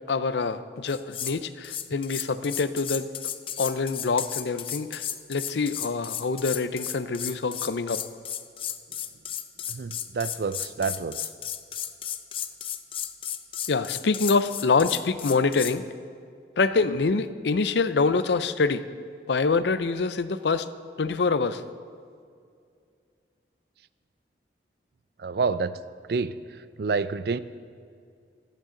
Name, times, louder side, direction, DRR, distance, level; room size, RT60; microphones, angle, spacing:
voice 1, 0.1-3.1 3.6-8.0 13.7-15.8 16.6-18.8 19.3-20.7 21.0-21.6, left 4 dB, 80° left, 13 dB, 0.6 m, -25 dB
sound 1, 0.9-1.4 1.6-15.8, left 10 dB, 30° left, 0.5 m, -34 dB
voice 2, 9.7-11.2 25.2-25.8 26.1-26.3 26.8-27.4, right 4 dB, 60° right, 15 dB, 0.4 m, -28 dB
26.0 x 9.0 x 3.9 m, 2.3 s
head